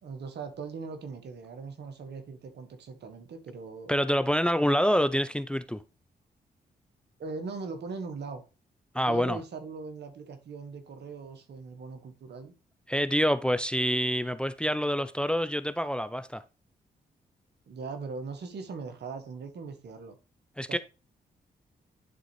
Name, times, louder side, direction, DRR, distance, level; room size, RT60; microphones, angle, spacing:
voice 1, 0.0-3.9 7.2-8.4 9.1-12.5 17.7-20.1 20.7-20.8, right 4 dB, 70° right, 1.3 m, -40 dB
voice 2, 3.9-5.8 8.9-9.4 12.9-16.4 20.6-20.8, equal, 5° left, 0.6 m, -26 dB
10.5 x 3.9 x 3.1 m
supercardioid pair, 50°, 18 cm